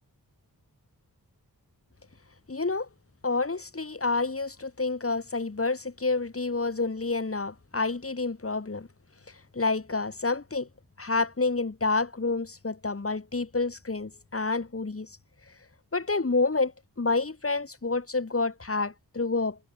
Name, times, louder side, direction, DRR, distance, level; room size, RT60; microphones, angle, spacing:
voice 1, 2.5-2.9 3.2-8.9 9.5-10.7 11.0-15.2 15.9-16.7 17.0-19.6, left 3 dB, 35° left, 3.0 m, -28 dB
wide cardioid pair, 70°, 39 cm